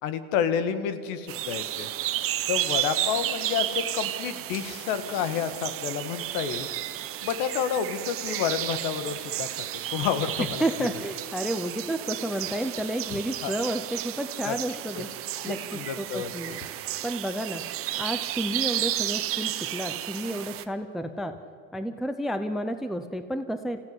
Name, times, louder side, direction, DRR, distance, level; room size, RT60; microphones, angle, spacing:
voice 1, 0.0-1.9 2.5-6.7 7.2-10.6 13.1-13.5 14.4-14.6 14.9-15.0 15.4-16.3, left 8 dB, 60° left, 11 dB, 1.9 m, -30 dB
sound 1, 1.3-20.7, right 13 dB, 35° right, 1.0 m, -32 dB
voice 2, 10.6-15.1 15.4-16.5 17.0-17.6 18.0-21.4 21.7-23.8, right 1 dB, ahead, 10 dB, 0.5 m, -31 dB
26.0 x 16.0 x 9.8 m, 2.5 s
cardioid pair, 165°, 41 cm